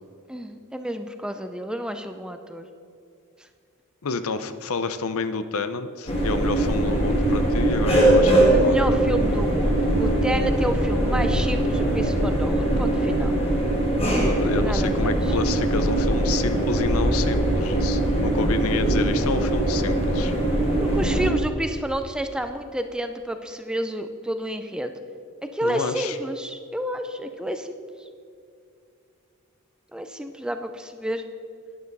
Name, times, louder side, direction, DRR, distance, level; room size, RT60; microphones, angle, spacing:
voice 1, 0.3-2.7 8.5-13.3 14.5-15.4 20.8-24.9 25.5-27.8 29.9-31.2, equal, 5° right, 8 dB, 0.4 m, -30 dB
voice 2, 4.0-9.0 14.2-20.3 25.6-26.2, left 4 dB, 70° left, 11 dB, 0.6 m, -29 dB
sound 1, 6.1-21.3, right 1 dB, 25° left, 2.0 m, -21 dB
11.5 x 9.7 x 4.0 m, 2.5 s
head